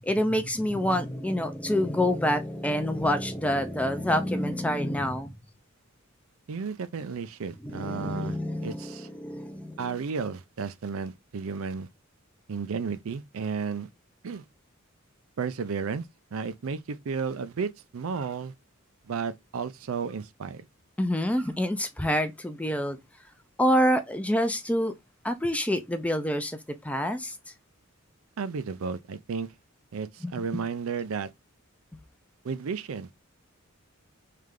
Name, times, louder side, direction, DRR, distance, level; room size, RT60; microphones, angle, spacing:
voice 1, 0.0-5.3 7.6-9.8 21.0-23.0 23.6-24.9 25.2-27.4 30.2-30.6, equal, 5° left, 0.5 m, -27 dB
voice 2, 6.5-8.4 8.6-9.1 9.8-11.9 12.5-13.9 14.2-14.4 15.4-16.1 16.3-18.5 19.1-20.7 28.4-29.5 29.9-31.3 32.4-33.1, right 5 dB, 75° right, 0.5 m, -33 dB
3.4 x 3.2 x 3.7 m
head